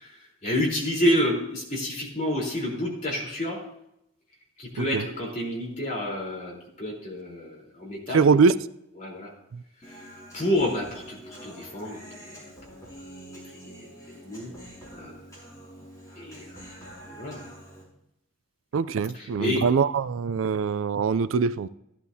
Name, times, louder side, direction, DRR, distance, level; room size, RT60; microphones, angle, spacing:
voice 1, 0.0-3.6 4.6-8.3 8.9-9.3 9.9-12.5 13.3-14.5 14.9-15.2 16.2-16.6 17.2-17.4 19.1-19.6, left 1 dB, 35° left, -4 dB, 3.8 m, -29 dB
voice 2, 8.1-8.6 18.7-21.7, right 5 dB, 75° right, 16 dB, 0.4 m, -22 dB
Human voice, 9.8-17.8, equal, 15° left, 5.4 m, -46 dB
15.0 x 11.5 x 2.8 m, 0.82 s
head